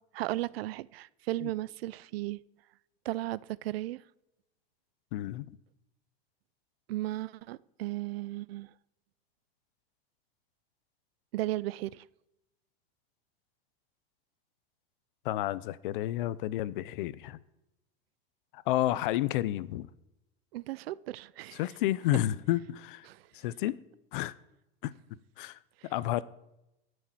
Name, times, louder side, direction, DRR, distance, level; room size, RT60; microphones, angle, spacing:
voice 1, 0.1-2.4 3.0-4.0 6.9-8.7 11.3-12.0 20.5-21.6 23.1-23.2 25.8-25.9, right 16 dB, 75° right, 0.6 m, -35 dB
voice 2, 5.1-5.6 15.2-17.4 18.5-19.9 21.5-23.1 23.3-23.8 24.1-24.3 24.8-24.9 25.4-25.6 25.9-26.2, left 14 dB, 55° left, 0.7 m, -31 dB
13.5 x 6.6 x 9.1 m
supercardioid pair, 165°, 30 cm